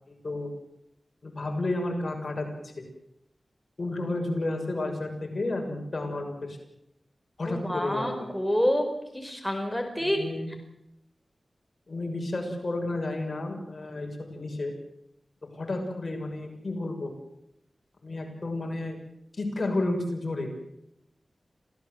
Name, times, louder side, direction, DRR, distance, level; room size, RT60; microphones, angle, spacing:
voice 1, 1.2-2.7 3.8-6.6 7.4-8.0 10.0-10.5 11.9-14.7 15.4-17.1 18.0-19.0 19.4-20.5, left 2 dB, 50° left, 2 dB, 6.5 m, -31 dB
voice 2, 7.5-8.9 9.1-10.2, equal, ahead, 3 dB, 4.7 m, -27 dB
27.0 x 16.5 x 7.9 m, 0.81 s
wide cardioid pair, 90°, 0 cm